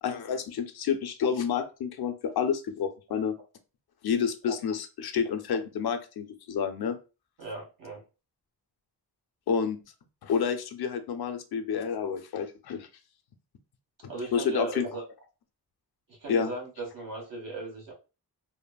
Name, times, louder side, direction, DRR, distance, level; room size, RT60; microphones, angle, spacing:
voice 1, 0.0-3.3 4.0-7.0 9.5-9.8 10.2-12.9 14.0-14.8 16.3-16.5, left 7 dB, 70° left, 7 dB, 0.5 m, -29 dB
voice 2, 7.4-8.0 14.1-15.0 16.1-17.9, right 3 dB, 55° right, -1 dB, 1.3 m, -37 dB
3.1 x 2.0 x 2.2 m, 0.31 s
wide cardioid pair, 115°, 40 cm